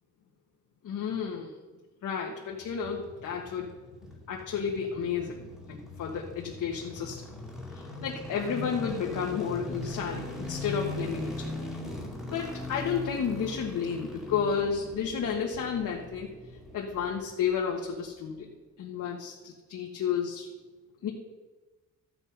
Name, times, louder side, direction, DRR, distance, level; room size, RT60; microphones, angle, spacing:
voice 1, 0.8-1.5 2.0-3.7 4.3-7.2 7.7-11.5 11.8-12.0 12.3-16.3 16.7-18.5 18.8-20.5 21.0-21.1, left 7 dB, 70° left, -1 dB, 1.6 m, -32 dB
sound 1, 2.5-17.7 18.0-18.1, left 1 dB, ahead, 2.1 m, -40 dB
13.5 x 8.3 x 5.6 m, 1.2 s
wide cardioid pair, 175°, 32 cm